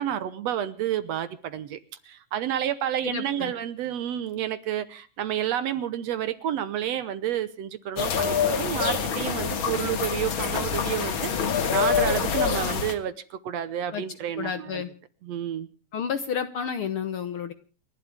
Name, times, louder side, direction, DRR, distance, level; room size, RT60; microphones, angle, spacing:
voice 1, 0.0-1.8 2.1-11.4 11.7-14.8 15.2-15.7, right 10 dB, 70° right, 1.7 m, -30 dB
voice 2, 3.0-3.5 13.9-14.0 14.4-14.9 15.9-17.5, left 7 dB, 70° left, 1.3 m, -30 dB
sound 1, 8.0-12.9, left 6 dB, 45° left, 1.9 m, -26 dB
29.5 x 11.5 x 3.5 m
omnidirectional pair, 3.9 m